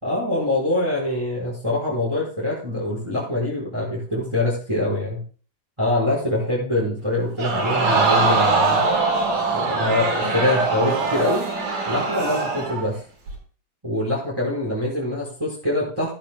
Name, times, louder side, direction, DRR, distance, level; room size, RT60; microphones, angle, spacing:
voice 1, 0.0-5.2 5.8-8.8 9.5-11.5 11.9-13.0 13.8-16.1, left 1 dB, 10° right, -5 dB, 4.8 m, -24 dB
Crowd, 7.4-12.8 13.3-13.4, right 3 dB, 90° right, 6.3 m, -22 dB
16.5 x 12.0 x 2.3 m, 0.40 s
omnidirectional pair, 3.7 m